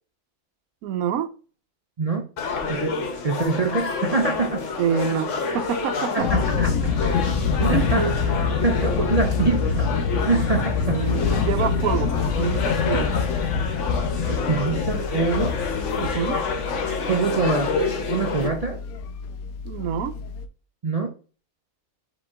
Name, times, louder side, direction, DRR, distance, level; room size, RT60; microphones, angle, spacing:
voice 1, 0.8-1.3 4.8-6.3 7.7-7.9 10.8-13.1 16.0-16.4 19.6-20.1, right 8 dB, 85° right, 1.1 m, -26 dB
sound 1, 2.4-18.5, left 4 dB, 65° left, 1.1 m, -29 dB
voice 2, 2.7-4.7 6.1-6.9 7.6-8.1 8.6-9.9 10.2-11.0 14.5-15.5 17.1-17.8 18.1-18.8 20.8-21.1, right 4 dB, 60° right, 0.4 m, -24 dB
sound 2, 6.2-20.5, left 5 dB, 90° left, 1.1 m, -26 dB
5.2 x 2.9 x 3.4 m
omnidirectional pair, 1.5 m